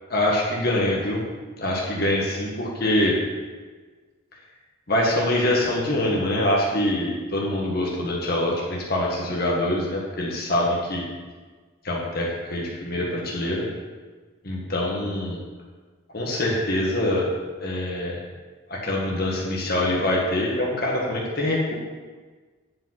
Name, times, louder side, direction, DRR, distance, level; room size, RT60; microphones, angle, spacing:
voice 1, 0.1-1.2 1.6-3.1 4.9-11.0 11.8-13.7 14.4-15.4 16.1-17.3 17.6-18.2 18.7-21.7, left 1 dB, 45° left, -3 dB, 1.5 m, -24 dB
9.9 x 5.3 x 5.8 m, 1.4 s
head